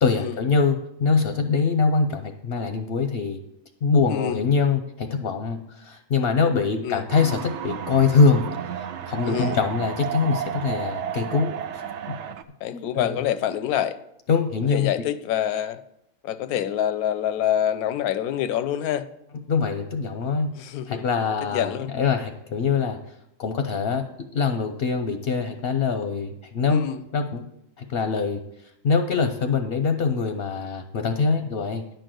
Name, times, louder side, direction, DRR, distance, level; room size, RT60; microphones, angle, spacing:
voice 1, 0.0-3.4 3.8-12.2 12.7-13.3 14.3-15.1 19.5-20.5 20.9-23.0 23.4-26.8 27.1-27.5 27.8-28.4 28.8-31.8, left 5 dB, 55° left, 6 dB, 0.7 m, -23 dB
sound 1, 7.1-12.4, right 9 dB, 65° right, 0.8 m, -32 dB
voice 2, 9.2-9.6 12.6-14.0 14.7-15.8 16.2-19.1 20.5-21.0 21.5-22.0 26.7-27.0, left 10 dB, 85° left, 13 dB, 1.1 m, -26 dB
10.5 x 4.5 x 7.6 m, 0.82 s
omnidirectional pair, 1.5 m